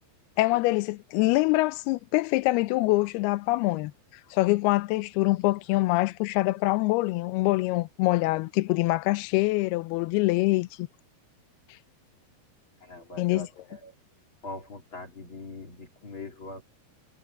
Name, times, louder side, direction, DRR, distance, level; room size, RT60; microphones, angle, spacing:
voice 1, 0.4-3.9 4.3-10.9 13.2-13.5, left 20 dB, 80° left, 2.5 m, -24 dB
voice 2, 12.8-13.9 14.4-16.6, left 2 dB, 30° left, 3.3 m, -42 dB
omnidirectional pair, 4.9 m